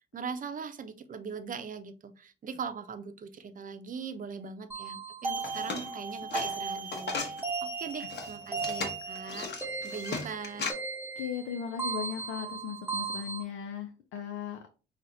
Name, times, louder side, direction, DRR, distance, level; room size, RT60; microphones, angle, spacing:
voice 1, 0.1-7.3 7.6-9.5 9.8-10.7, right 6 dB, 45° right, 9 dB, 0.7 m, -40 dB
sound 1, 4.7-13.4, right 4 dB, 10° right, 0.9 m, -37 dB
sound 2, 5.3-7.4 7.9-10.7, left 4 dB, 55° left, 1.0 m, -36 dB
voice 2, 11.2-14.6, left 8 dB, 90° left, 4 dB, 0.6 m, -37 dB
5.5 x 2.5 x 2.7 m, 0.34 s
cardioid pair, 90°, 20 cm